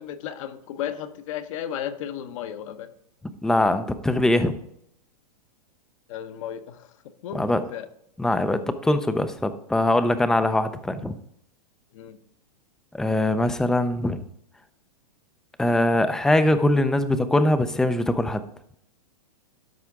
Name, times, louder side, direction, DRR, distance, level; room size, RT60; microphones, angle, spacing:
voice 1, 0.0-2.9 6.1-6.9 7.2-7.9 11.9-12.2, left 10 dB, 50° left, 9 dB, 0.8 m, -34 dB
voice 2, 3.4-4.6 7.3-7.6 8.2-11.2 12.9-14.2 15.6-18.4, left 1 dB, 5° left, 11 dB, 0.3 m, -22 dB
12.5 x 4.8 x 3.5 m, 0.71 s
hypercardioid pair, 140°, 21 cm